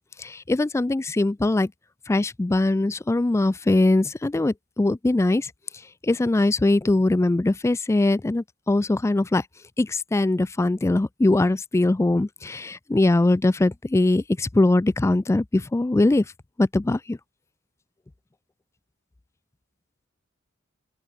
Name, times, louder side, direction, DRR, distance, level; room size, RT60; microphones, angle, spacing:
voice 1, 0.2-1.7 2.1-5.5 6.0-9.5 9.8-16.3 16.6-17.2, left 2 dB, 15° left, 0.3 m, -21 dB
open air
head